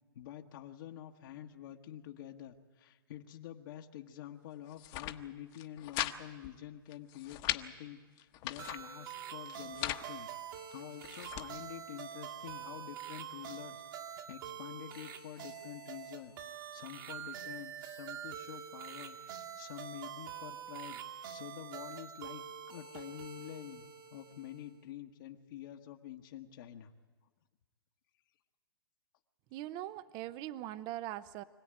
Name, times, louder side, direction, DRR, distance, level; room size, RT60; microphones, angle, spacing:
voice 1, 0.1-21.0 21.3-22.4 22.7-26.9, left 11 dB, 60° left, 2 dB, 1.3 m, -48 dB
sound 1, 4.7-5.2 5.5-6.2 6.4-6.5 6.9-7.6 8.2-8.8 9.5-10.1 10.7-11.5, left 15 dB, 35° left, 1.1 m, -38 dB
sound 2, 8.6-24.8, right 9 dB, 60° right, 2.2 m, -46 dB
voice 2, 29.5-31.4, right 14 dB, 35° right, 16 dB, 0.7 m, -41 dB
25.0 x 16.5 x 8.9 m, 1.4 s
hypercardioid pair, 125°, 13 cm